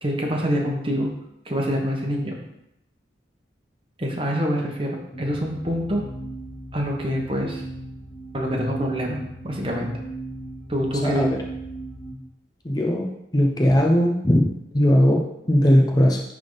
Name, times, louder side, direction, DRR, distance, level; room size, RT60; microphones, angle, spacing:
voice 1, 0.0-1.1 1.4-2.4 4.0-6.0 6.7-7.6 8.3-9.9 10.7-11.3, equal, 30° right, 0 dB, 1.2 m, -25 dB
sound 1, 5.1-12.1, right 1 dB, 35° left, 2.9 m, -37 dB
voice 2, 11.0-11.4 12.6-13.1 13.3-14.5 14.7-16.2, equal, 20° left, 0 dB, 0.6 m, -18 dB
10.5 x 3.6 x 4.0 m, 0.84 s
head